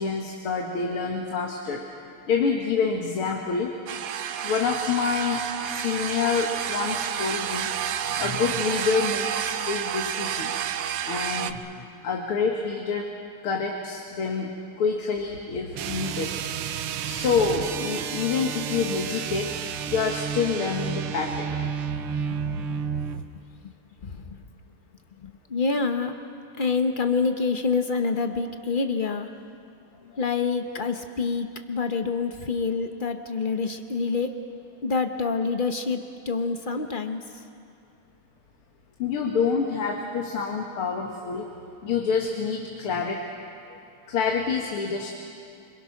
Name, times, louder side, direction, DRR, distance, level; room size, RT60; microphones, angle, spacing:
voice 1, 0.0-1.8 2.3-3.7 4.4-5.4 5.7-7.7 8.1-10.5 11.1-11.6 12.0-13.1 13.4-16.3 17.1-19.5 19.9-21.6 39.0-41.5 41.8-43.2 43.7-43.8 44.1-45.1, left 5 dB, 85° left, 1 dB, 2.5 m, -27 dB
sound 1, 3.9-11.5, right 9 dB, 70° right, 1.4 m, -30 dB
sound 2, 15.7-23.3, right 7 dB, 90° right, 1.7 m, -31 dB
voice 2, 22.1-22.8 23.6-23.7 24.0-24.4 25.2-26.1 26.6-29.3 30.2-34.4 34.8-37.4, left 4 dB, 60° left, 6 dB, 0.5 m, -27 dB
27.0 x 25.5 x 5.9 m, 2.4 s
omnidirectional pair, 2.4 m